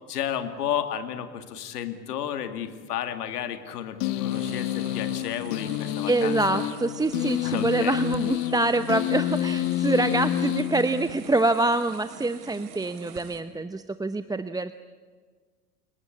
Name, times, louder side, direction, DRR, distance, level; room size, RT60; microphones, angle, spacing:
voice 1, 0.1-6.4 7.4-7.9, left 9 dB, 80° left, 9 dB, 2.5 m, -32 dB
sound 1, 4.0-11.4, left 12 dB, 60° left, 1.6 m, -28 dB
sound 2, 4.3-13.4, right 8 dB, 55° right, 3.4 m, -45 dB
voice 2, 6.1-14.7, right 2 dB, 10° right, 11 dB, 0.8 m, -25 dB
30.0 x 19.0 x 8.6 m, 1.5 s
hypercardioid pair, 85°, 46 cm